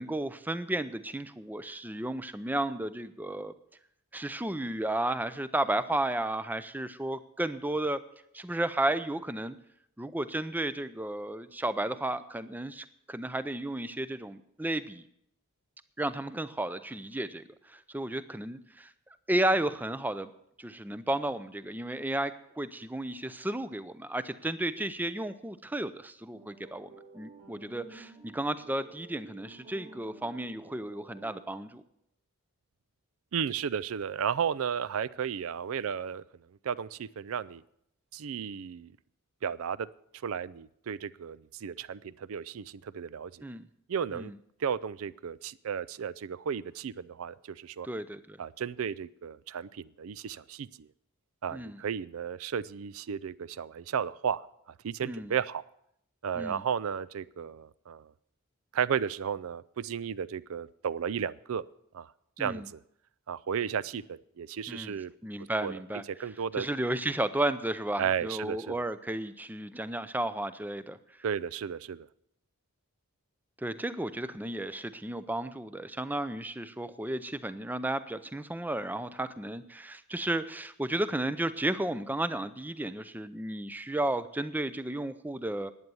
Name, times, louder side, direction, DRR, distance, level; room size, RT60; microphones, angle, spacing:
voice 1, 0.0-3.5 4.1-8.0 8.3-9.6 10.0-15.0 16.0-18.9 19.3-20.3 20.6-26.9 27.1-31.8 43.4-43.6 44.1-44.3 47.8-48.4 51.5-51.8 55.0-55.3 56.4-56.6 62.4-62.7 64.7-65.0 65.2-66.0 66.5-71.0 73.6-85.7, right 1 dB, 10° right, 13 dB, 0.5 m, -33 dB
sound 1, 26.3-31.8, right 2 dB, 35° right, 1.8 m, -52 dB
voice 2, 33.3-36.2 36.6-37.6 38.1-38.9 39.4-39.9 40.2-43.4 43.9-44.3 44.6-47.9 48.4-50.9 51.4-54.5 54.8-55.6 56.2-58.1 58.7-61.6 61.9-62.1 62.4-62.8 63.3-65.1 65.6-65.7 66.2-66.7 68.0-68.8 71.2-72.1, right 7 dB, 65° right, 19 dB, 0.4 m, -34 dB
11.0 x 9.3 x 6.9 m, 0.74 s
head